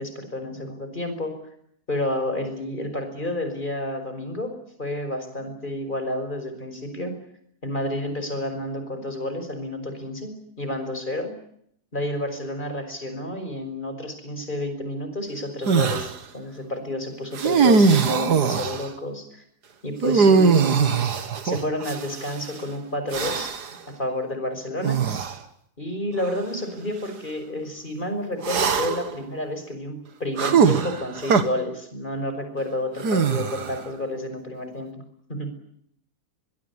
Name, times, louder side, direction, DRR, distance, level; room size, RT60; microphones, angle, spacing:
voice 1, 0.0-1.4 1.9-4.5 4.8-7.2 7.6-11.3 11.9-19.4 19.8-21.0 21.4-23.5 23.9-25.1 25.8-35.0 35.3-35.5, left 1 dB, 30° left, 7 dB, 5.7 m, -30 dB
sound 1, 15.7-16.1 17.3-18.9 20.0-22.3 23.1-23.7 24.8-25.3 26.2-26.3 28.4-29.1 30.4-31.4 33.0-33.8, right 5 dB, 85° right, 2.2 m, -21 dB
23.5 x 22.5 x 9.8 m, 0.70 s
omnidirectional pair, 1.7 m